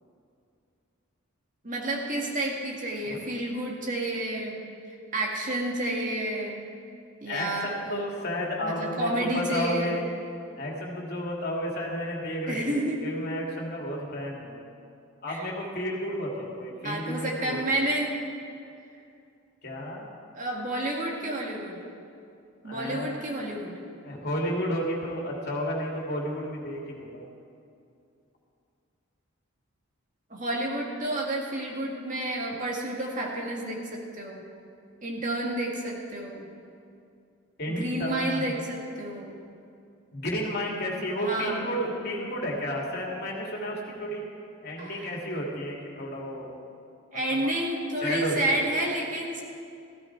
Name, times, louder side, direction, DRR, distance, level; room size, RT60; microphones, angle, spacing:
voice 1, 1.6-4.6 4.9-6.6 7.2-8.1 8.6-10.0 12.5-13.0 15.3-15.5 16.8-18.2 20.3-21.8 22.6-23.7 30.3-34.4 35.0-36.5 37.7-39.3 41.2-41.7 44.8-45.1 47.1-49.4, right 1 dB, 40° right, -1 dB, 2.0 m, -30 dB
voice 2, 7.9-10.0 10.6-14.6 15.2-17.6 19.6-20.1 22.6-23.1 24.0-27.3 37.6-38.4 40.1-44.3 44.6-46.5 47.4-47.6 48.0-48.6, equal, 50° left, -2 dB, 2.5 m, -32 dB
15.0 x 13.0 x 4.7 m, 2.5 s
head